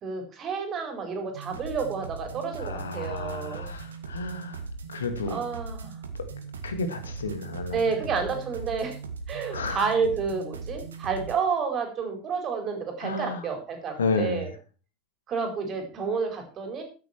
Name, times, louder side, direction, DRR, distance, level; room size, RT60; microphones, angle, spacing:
voice 1, 0.0-3.7 5.3-5.9 7.7-9.0 9.3-14.5 15.3-16.8, right 5 dB, 35° right, 5 dB, 4.7 m, -30 dB
sound 1, 1.3-11.4, right 4 dB, 70° right, 2.0 m, -39 dB
voice 2, 2.6-4.6 4.9-5.4 6.1-6.2 6.6-7.9 9.5-9.8 13.0-13.5 14.0-14.5, left 3 dB, 70° left, 9 dB, 2.0 m, -31 dB
13.5 x 9.8 x 4.5 m, 0.36 s
figure-of-eight pair, 80°, 0 cm